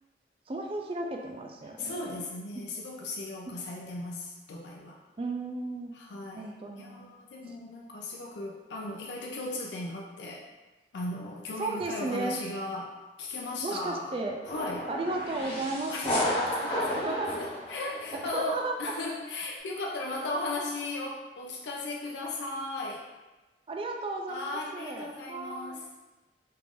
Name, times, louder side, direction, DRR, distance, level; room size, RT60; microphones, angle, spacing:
voice 1, 0.5-2.2 2.5-2.6 3.5-3.6 5.2-5.9 6.3-7.1 11.6-12.4 13.6-14.4 14.9-16.4 16.9-17.3 18.2-18.7 23.7-25.8, right 2 dB, 30° right, 2 dB, 0.3 m, -34 dB
voice 2, 1.8-5.0 5.9-6.5 6.8-10.4 10.9-14.1 14.5-14.9 15.9-16.1 16.6-23.0 24.3-25.8, left 2 dB, 80° left, -1 dB, 0.4 m, -36 dB
sound 1, 14.4-18.5, left 1 dB, 30° left, 0.7 m, -32 dB
3.3 x 2.5 x 3.5 m, 1.2 s
head